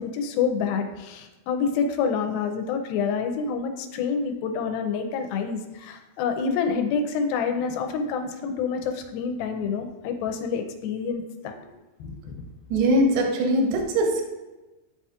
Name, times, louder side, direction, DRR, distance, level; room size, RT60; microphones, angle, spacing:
voice 1, 0.0-11.5 12.0-12.4, left 5 dB, 90° left, 5 dB, 2.4 m, -27 dB
voice 2, 12.7-14.2, right 1 dB, 80° right, 1 dB, 1.5 m, -21 dB
10.0 x 4.3 x 2.4 m, 1.1 s
omnidirectional pair, 4.2 m